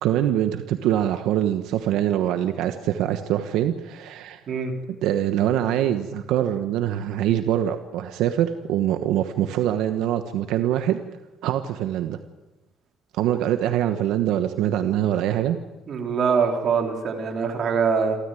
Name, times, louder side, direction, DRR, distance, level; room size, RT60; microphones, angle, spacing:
voice 1, 0.0-4.4 5.0-11.0 11.4-12.2 13.1-15.6, right 11 dB, 85° right, 7 dB, 1.2 m, -24 dB
voice 2, 15.9-18.2, right 6 dB, 45° right, 2 dB, 3.7 m, -23 dB
28.5 x 13.5 x 9.2 m, 1.1 s
cardioid pair, 145°, 0 cm